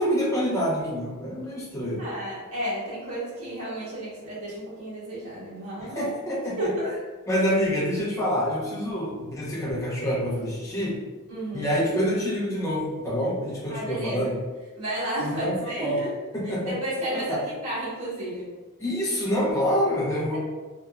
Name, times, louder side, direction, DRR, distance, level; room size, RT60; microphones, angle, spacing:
voice 1, 0.0-2.1 5.8-6.7 7.3-11.0 11.5-14.4 15.2-16.0 16.3-16.8 17.1-17.4 18.8-20.4, equal, 15° left, -6 dB, 0.5 m, -27 dB
voice 2, 2.0-6.1 6.6-6.9 11.3-11.7 13.7-14.3 14.7-16.1 16.4-18.5, right 1 dB, 75° right, -9 dB, 1.3 m, -32 dB
2.8 x 2.1 x 2.3 m, 1.3 s
head